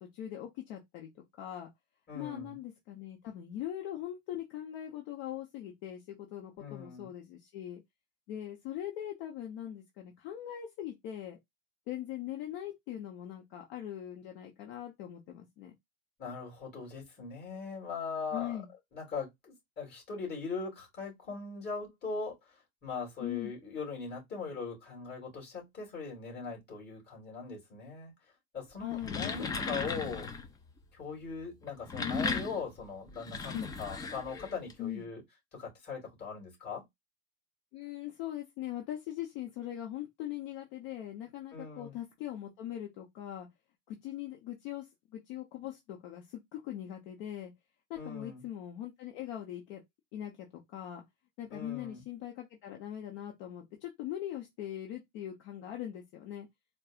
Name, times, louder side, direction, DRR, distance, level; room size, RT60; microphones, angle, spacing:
voice 1, 0.0-1.7 2.1-7.8 8.3-11.4 11.9-15.7 18.3-18.7 23.2-23.5 28.8-30.1 33.5-33.7 34.8-35.0 37.7-43.5 43.9-47.5 47.9-49.8 50.1-50.5 50.7-51.0 51.4-56.5, left 11 dB, 60° left, 1.0 m, -41 dB
voice 2, 2.1-2.6 6.6-7.1 16.2-18.6 18.9-28.1 28.5-30.3 30.9-35.2 35.5-36.8 41.5-42.0 48.0-48.4 51.5-52.0, left 5 dB, 30° left, 2.7 m, -40 dB
sound 1, 28.8-30.5 31.6-34.7, left 4 dB, 15° left, 0.3 m, -36 dB
4.2 x 2.3 x 2.4 m
supercardioid pair, 135°, 32 cm